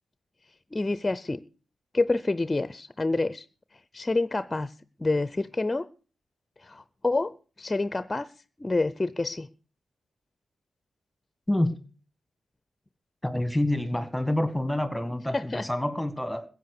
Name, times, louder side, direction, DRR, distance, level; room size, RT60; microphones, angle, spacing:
voice 1, 0.7-1.4 1.9-3.4 3.9-4.7 5.0-5.9 6.6-8.3 8.6-9.5 15.3-15.7, left 2 dB, 25° left, 0.6 m, -27 dB
voice 2, 13.2-16.5, left 1 dB, 5° left, 1.9 m, -27 dB
15.5 x 8.6 x 6.7 m
supercardioid pair, 40°, 0 cm